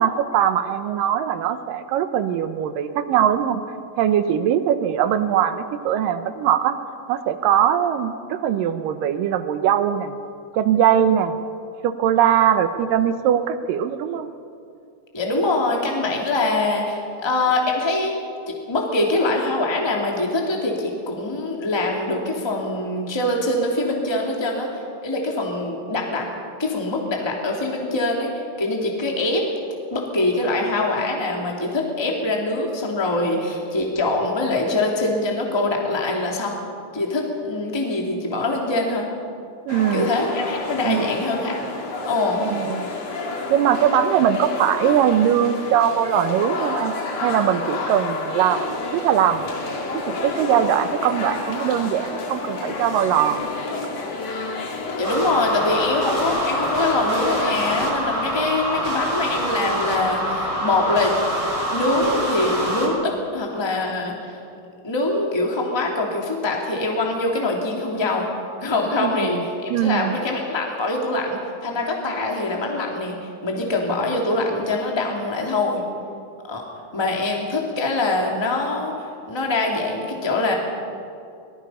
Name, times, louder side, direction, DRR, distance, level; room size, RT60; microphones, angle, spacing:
voice 1, 0.0-3.6 4.0-6.8 7.1-10.2 10.5-11.4 11.8-14.3 39.7-40.1 40.8-41.1 42.4-42.8 43.5-46.9 47.2-49.5 49.9-53.4 69.0-69.4 69.7-70.2, right 9 dB, 80° right, 10 dB, 2.5 m, -21 dB
voice 2, 15.1-18.1 18.7-26.3 26.6-29.4 29.9-36.6 36.9-39.1 39.9-41.6 42.0-42.4 55.0-61.2 61.7-64.4 64.8-68.3 68.6-73.2 73.4-75.8 76.5-76.6 76.9-80.5, left 2 dB, 10° left, 0 dB, 2.1 m, -23 dB
sound 1, 39.7-57.9, left 3 dB, 50° left, 3.1 m, -30 dB
sound 2, 55.0-62.9, equal, 20° right, 3.9 m, -25 dB
24.0 x 19.0 x 5.7 m, 2.4 s
omnidirectional pair, 4.0 m